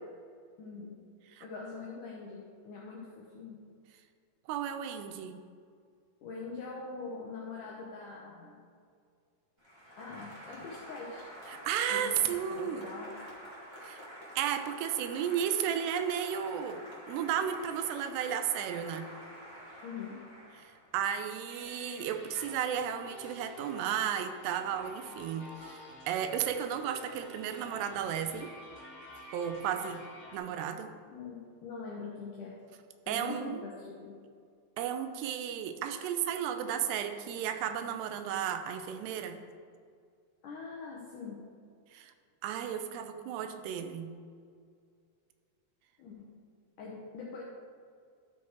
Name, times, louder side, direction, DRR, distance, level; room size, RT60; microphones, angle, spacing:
voice 1, 0.6-1.0 1.4-3.7 6.2-8.7 10.0-11.3 11.9-13.2 19.8-20.2 31.1-32.6 33.1-34.2 40.4-41.4 46.0-46.3 46.8-47.4, left 4 dB, 75° left, -3 dB, 1.8 m, -43 dB
voice 2, 4.5-5.4 11.5-12.9 13.8-14.0 14.4-16.8 17.1-19.1 20.6-28.5 29.3-30.0 30.3-30.9 33.1-33.7 34.8-39.4 41.9-42.1 42.4-44.1, right 9 dB, 85° right, 7 dB, 2.8 m, -33 dB
Applause, 9.6-21.1, equal, 30° right, 0.4 m, -48 dB
sound 1, 21.5-30.4, left 1 dB, 55° left, 0.7 m, -49 dB
13.0 x 4.6 x 4.6 m, 2.2 s
omnidirectional pair, 4.7 m